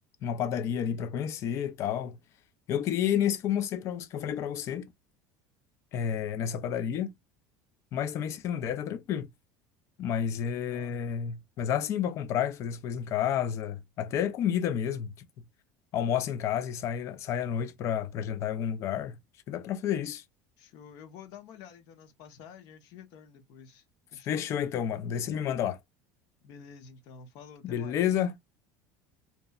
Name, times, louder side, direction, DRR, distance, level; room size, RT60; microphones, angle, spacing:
voice 1, 0.2-2.2 2.7-4.9 5.9-7.1 7.9-9.3 10.0-15.1 15.9-19.2 19.5-20.2 24.3-25.8 27.6-28.3, left 9 dB, 40° left, 0.4 m, -30 dB
voice 2, 10.4-11.0 20.6-23.8 24.1-24.5 26.4-28.2, left 6 dB, 55° left, 0.7 m, -49 dB
2.8 x 2.1 x 2.2 m
cardioid pair, 155°, 8 cm